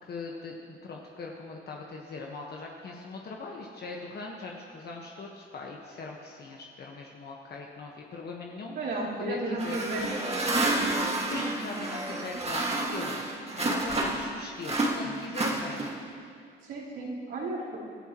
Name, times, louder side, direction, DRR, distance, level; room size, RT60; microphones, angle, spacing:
voice 1, 0.0-9.8 11.0-13.2 13.5-15.9, left 3 dB, 55° left, -1 dB, 1.4 m, -40 dB
voice 2, 8.8-10.4 16.6-17.8, right 2 dB, 75° right, -7 dB, 4.1 m, -33 dB
sound 1, 9.6-14.3 14.6-16.1, right 2 dB, 30° right, 1.9 m, -29 dB
20.0 x 13.0 x 3.1 m, 2.3 s
cardioid pair, 90°, 20 cm